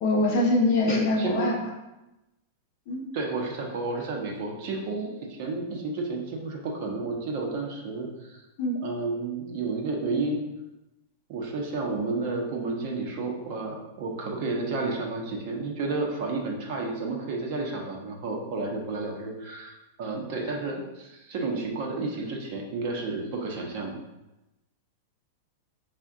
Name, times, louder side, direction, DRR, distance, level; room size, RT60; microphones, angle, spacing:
voice 1, 0.0-1.6 2.9-3.0 8.6-8.8, left 2 dB, 35° left, -1 dB, 0.5 m, -23 dB
voice 2, 0.9-1.5 3.1-8.4 8.8-10.4 11.3-24.0, right 3 dB, 40° right, 1 dB, 0.5 m, -31 dB
3.4 x 2.1 x 3.6 m, 0.98 s
supercardioid pair, 175°, 0 cm